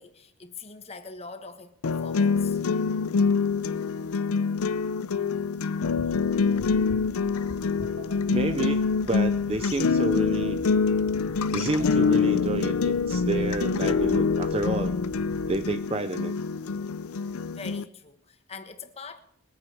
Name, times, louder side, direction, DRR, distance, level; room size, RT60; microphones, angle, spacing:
voice 1, 0.0-2.6 17.5-19.2, left 4 dB, 30° left, 1.3 m, -43 dB
sound 1, 1.8-17.8, left 5 dB, 90° left, 0.6 m, -25 dB
sound 2, 5.8-15.8, right 1 dB, 75° right, 1.7 m, -44 dB
voice 2, 8.3-10.6 11.5-15.0 15.5-16.3, right 2 dB, 25° right, 0.5 m, -30 dB
22.5 x 8.9 x 4.9 m
head